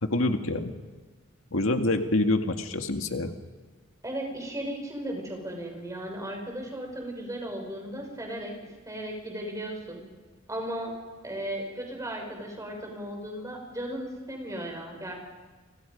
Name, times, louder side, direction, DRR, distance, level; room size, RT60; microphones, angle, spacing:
voice 1, 0.0-0.7 1.5-3.3, left 2 dB, 85° left, 5 dB, 2.0 m, -26 dB
voice 2, 4.0-8.5 8.8-10.0 10.5-10.9 11.2-15.1, right 1 dB, 15° right, 1 dB, 6.3 m, -36 dB
30.0 x 25.5 x 5.3 m, 1.3 s
head